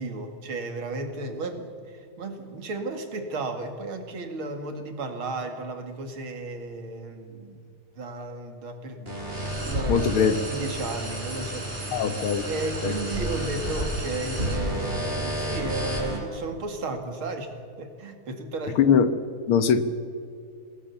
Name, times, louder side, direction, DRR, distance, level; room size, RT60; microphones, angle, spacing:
voice 1, 0.0-7.6 8.0-12.0 12.4-17.5 17.8-19.0, right 2 dB, 70° right, 6 dB, 3.0 m, -34 dB
sound 1, 9.1-16.2, right 1 dB, 25° right, 5.7 m, -30 dB
voice 2, 9.9-10.3 11.9-12.4 12.8-12.9 18.8-19.1 19.5-19.8, left 7 dB, 75° left, 11 dB, 2.1 m, -21 dB
27.0 x 18.5 x 7.1 m, 2.3 s
omnidirectional pair, 2.4 m